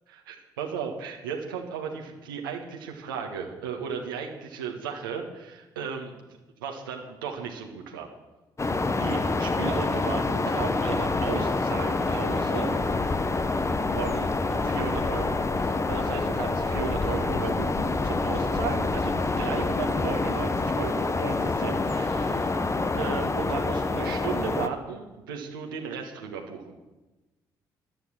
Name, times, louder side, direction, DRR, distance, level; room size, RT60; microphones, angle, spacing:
voice 1, 0.1-6.2 6.6-8.1 8.6-12.8 13.9-26.8, right 6 dB, 80° right, 2 dB, 1.7 m, -35 dB
sound 1, 8.6-24.7, left 3 dB, 25° left, 1.3 m, -27 dB
16.0 x 11.5 x 6.5 m, 1.1 s
figure-of-eight pair, 45°, 11 cm